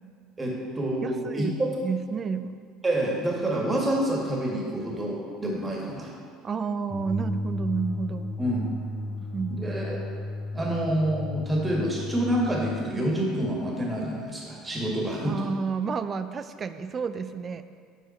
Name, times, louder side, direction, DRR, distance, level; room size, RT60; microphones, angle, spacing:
voice 1, 0.4-1.7 2.8-6.1 8.4-8.6 9.5-10.0 10.5-15.3, right 1 dB, 20° right, -3 dB, 1.9 m, -27 dB
voice 2, 1.0-2.6 6.4-8.3 9.1-9.5 15.2-17.6, right 5 dB, 35° right, 11 dB, 0.4 m, -31 dB
sound 1, 6.9-12.9, left 1 dB, 15° left, 1.2 m, -34 dB
7.9 x 4.8 x 4.4 m, 2.1 s
hypercardioid pair, 70°, 0 cm